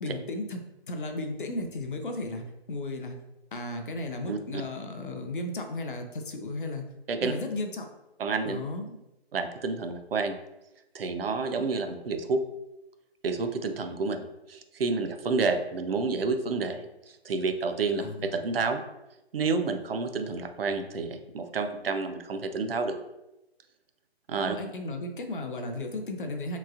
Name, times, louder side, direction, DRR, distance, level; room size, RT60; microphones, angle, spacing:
voice 1, 0.0-3.2 3.5-6.8 7.2-7.9 8.4-9.0 18.0-18.2 24.5-26.6, left 2 dB, 55° left, 5 dB, 0.5 m, -35 dB
voice 2, 4.3-4.6 7.1-7.3 8.2-8.6 9.3-10.4 10.9-12.4 13.2-18.8 19.3-23.0 24.3-24.6, right 4 dB, 65° right, 7 dB, 0.5 m, -29 dB
3.0 x 2.7 x 2.4 m, 0.93 s
figure-of-eight pair, 160°, 31 cm